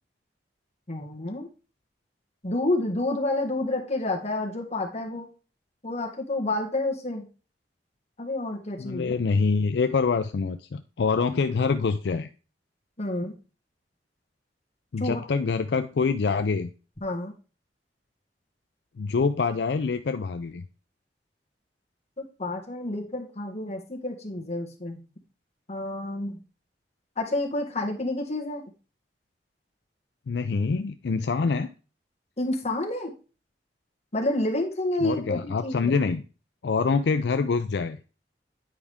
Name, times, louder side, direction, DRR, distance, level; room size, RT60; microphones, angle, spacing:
voice 1, 0.9-1.5 2.4-5.3 5.8-7.3 8.2-9.2 13.0-13.3 15.0-15.2 17.0-17.3 22.2-25.0 25.7-26.4 27.2-28.6 32.4-33.1 34.1-36.0, left 2 dB, 40° left, 1 dB, 1.6 m, -29 dB
voice 2, 8.8-12.3 14.9-16.7 19.0-20.6 30.3-31.7 35.0-36.2 36.6-38.0, left 4 dB, 70° left, 9 dB, 0.4 m, -25 dB
9.4 x 4.9 x 3.5 m, 0.34 s
head